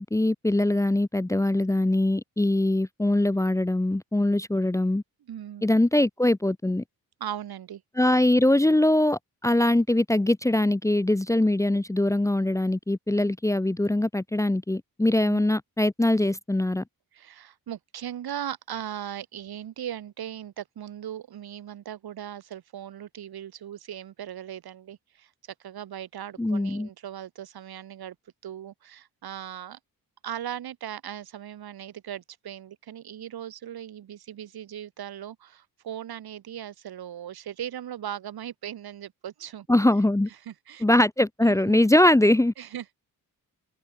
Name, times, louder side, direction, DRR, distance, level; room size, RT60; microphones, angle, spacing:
voice 1, 0.0-5.0 5.6-6.8 8.0-16.8 26.4-26.9 39.7-40.3 40.8-42.5, left 1 dB, 10° left, 0.9 m, -22 dB
voice 2, 5.2-5.7 7.2-7.8 17.1-28.2 28.4-29.8 30.2-39.7 40.4-40.8 41.4-41.8 42.6-43.0, right 10 dB, 85° right, 7.6 m, -38 dB
wide cardioid pair, 135°, 36 cm